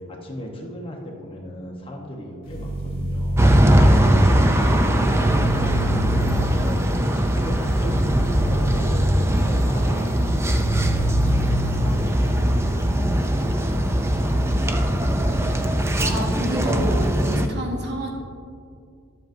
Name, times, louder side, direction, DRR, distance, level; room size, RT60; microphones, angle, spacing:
voice 1, 0.1-9.0 9.3-14.9, equal, 25° left, -1 dB, 1.0 m, -37 dB
sound 1, 2.4-3.8 5.1-6.4 7.8-9.1 10.4-11.8, right 1 dB, 40° left, 1.5 m, -27 dB
sound 2, 3.4-17.5, right 1 dB, 10° right, 0.4 m, -20 dB
voice 2, 15.9-18.1, equal, 50° right, 0 dB, 1.3 m, -29 dB
12.0 x 7.9 x 2.6 m, 2.4 s
head